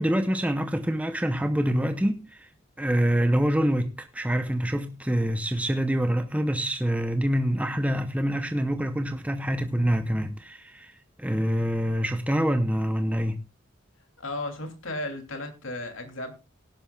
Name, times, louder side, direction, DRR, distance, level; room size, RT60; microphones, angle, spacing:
voice 1, 0.0-2.5 2.8-10.9 11.2-13.4, equal, 5° right, 0.7 m, -26 dB
voice 2, 14.2-16.3, left 2 dB, 75° left, 2.8 m, -34 dB
18.0 x 11.0 x 2.4 m
head